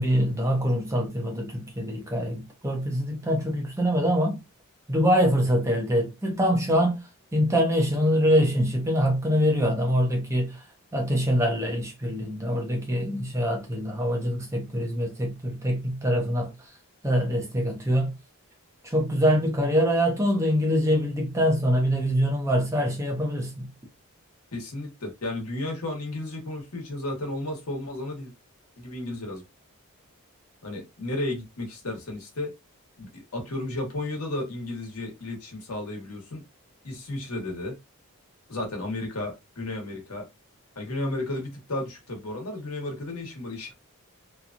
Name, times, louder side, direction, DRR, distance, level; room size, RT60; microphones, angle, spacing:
voice 1, 0.0-4.4 4.9-10.6 10.9-16.7 17.0-18.1 18.8-23.7, equal, 15° right, 0.6 m, -24 dB
voice 2, 24.5-28.3 28.8-29.4 30.6-32.5 33.0-36.4 36.8-37.7 38.5-40.2 40.7-43.7, left 2 dB, 75° left, 1.2 m, -33 dB
2.9 x 2.3 x 2.4 m
head